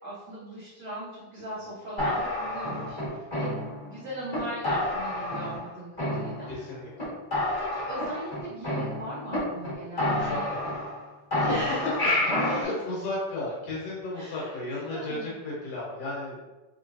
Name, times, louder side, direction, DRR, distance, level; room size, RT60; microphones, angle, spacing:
voice 1, 0.0-3.5 3.8-6.5 7.6-10.5 11.4-12.0 12.5-12.7 14.1-15.4, right 1 dB, 90° right, -9 dB, 1.0 m, -38 dB
sound 1, 2.0-3.9 4.3-4.4 4.6-5.7 6.0-6.7 7.0-7.1 7.3-9.4 9.6-9.7 10.0-11.0 11.3-12.6, left 1 dB, 35° left, 0.6 m, -29 dB
voice 2, 6.5-7.1 10.1-10.6 11.3-16.4, left 2 dB, 65° left, -5 dB, 1.8 m, -34 dB
4.6 x 2.9 x 2.6 m, 1.1 s
omnidirectional pair, 3.5 m